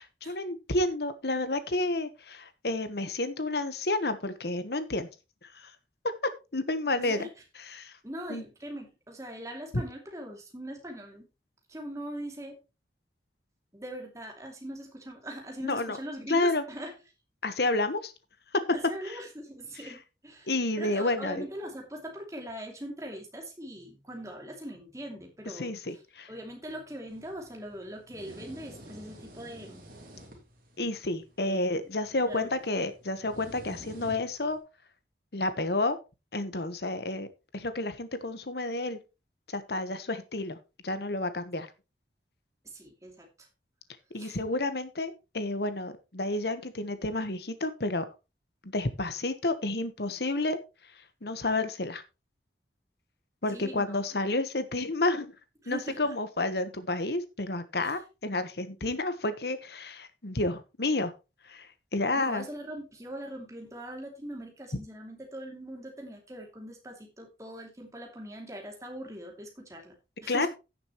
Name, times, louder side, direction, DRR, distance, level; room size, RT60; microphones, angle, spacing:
voice 1, 0.0-5.1 5.4-5.7 6.5-7.3 7.7-7.9 8.3-8.4 15.6-16.0 16.3-16.6 17.4-18.1 19.0-19.2 19.8-19.9 20.5-21.4 25.5-26.3 30.8-34.6 35.3-36.0 36.3-37.3 37.5-39.0 39.5-40.6 40.8-41.7 44.1-48.0 48.6-50.6 51.2-52.0 53.4-55.3 55.7-61.1 61.5-62.4 70.3-70.5, left 2 dB, 65° left, 11 dB, 1.2 m, -30 dB
voice 2, 7.0-7.3 8.0-11.2 11.7-12.6 13.7-16.9 18.7-20.5 20.8-26.0 26.3-29.8 31.4-31.6 32.3-32.5 42.6-43.5 44.2-44.4 53.5-54.2 55.6-56.2 57.8-58.0 62.2-70.0 70.2-70.5, right 1 dB, 15° right, 2 dB, 2.6 m, -41 dB
sound 1, 27.1-34.6, equal, 50° right, 3.2 m, -50 dB
16.0 x 6.8 x 3.1 m, 0.28 s
head